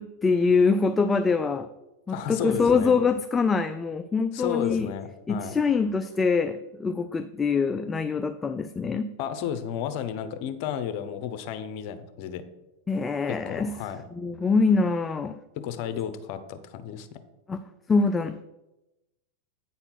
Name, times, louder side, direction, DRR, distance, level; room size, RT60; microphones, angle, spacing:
voice 1, 0.0-1.7 2.1-4.9 5.3-9.1 12.9-13.8 14.1-15.4 17.5-17.6 17.9-18.4, left 4 dB, 15° left, 9 dB, 0.4 m, -24 dB
voice 2, 2.1-3.0 4.3-5.5 9.2-12.4 13.3-14.0 15.6-17.1, left 9 dB, 55° left, 11 dB, 0.8 m, -32 dB
8.9 x 4.3 x 5.8 m, 0.97 s
hypercardioid pair, 115°, 0 cm